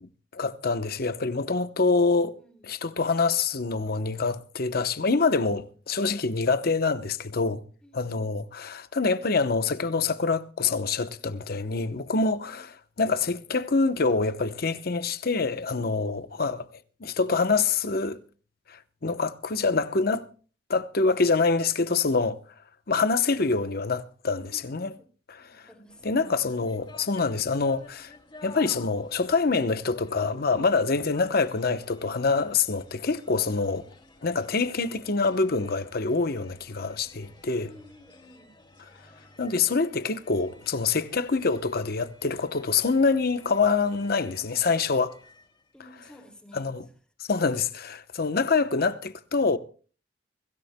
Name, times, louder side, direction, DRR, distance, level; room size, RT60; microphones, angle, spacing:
voice 1, 0.0-2.4 2.6-7.6 7.9-16.7 17.0-18.2 18.7-20.2 20.7-22.4 22.9-25.0 25.3-25.6 26.0-28.1 28.4-33.9 34.2-37.7 39.4-45.2 46.5-46.8 47.3-49.6, left 4 dB, 55° left, 0.9 m, -26 dB
voice 2, 2.1-2.7 7.8-8.5 12.4-12.7 24.5-25.1 25.4-26.3 37.6-38.5 45.7-46.9, equal, 5° left, 2.5 m, -53 dB
sound 1, 25.9-45.7, left 2 dB, 30° left, 2.7 m, -53 dB
23.5 x 16.0 x 2.2 m
head